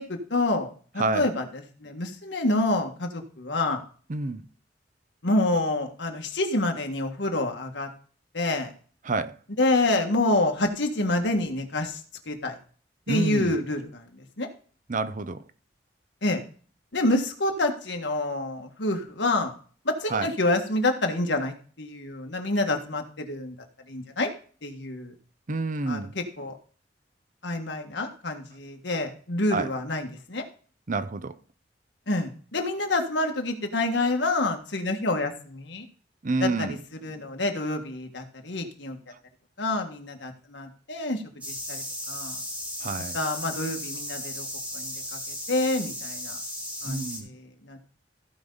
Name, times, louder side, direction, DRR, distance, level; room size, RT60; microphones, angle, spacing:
voice 1, 0.0-3.8 5.2-7.9 8.3-8.7 9.6-12.0 12.2-12.6 13.1-14.5 16.2-16.4 16.9-19.5 19.8-23.6 23.9-24.3 24.6-25.1 25.9-26.5 27.4-30.4 32.1-35.8 36.4-36.8 37.0-39.0 39.6-42.4 43.1-44.5 44.7-46.4 46.8-47.8, left 2 dB, 80° left, 1.7 m, -27 dB
voice 2, 1.0-1.3 4.1-4.4 9.0-9.4 13.1-13.6 14.9-15.4 20.1-20.3 25.5-26.1 29.5-29.7 30.9-31.4 36.2-36.8 42.8-43.2 46.8-47.3, right 3 dB, 45° right, 0.6 m, -28 dB
sound 1, 41.4-47.2, left 1 dB, 10° right, 2.1 m, -35 dB
15.0 x 5.3 x 3.9 m
head